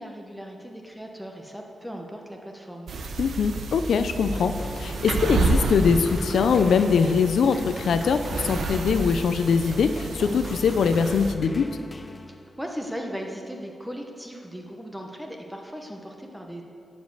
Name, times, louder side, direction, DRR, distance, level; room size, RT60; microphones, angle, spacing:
voice 1, 0.0-2.9 12.6-16.6, equal, 5° right, 1 dB, 1.0 m, -37 dB
sound 1, 2.9-11.3, right 3 dB, 75° right, 0.9 m, -30 dB
voice 2, 3.2-11.7, left 6 dB, 85° left, 9 dB, 0.5 m, -22 dB
sound 2, 4.3-12.7, left 2 dB, 25° left, 0.5 m, -41 dB
11.5 x 5.3 x 8.0 m, 2.5 s
wide cardioid pair, 120°, 0 cm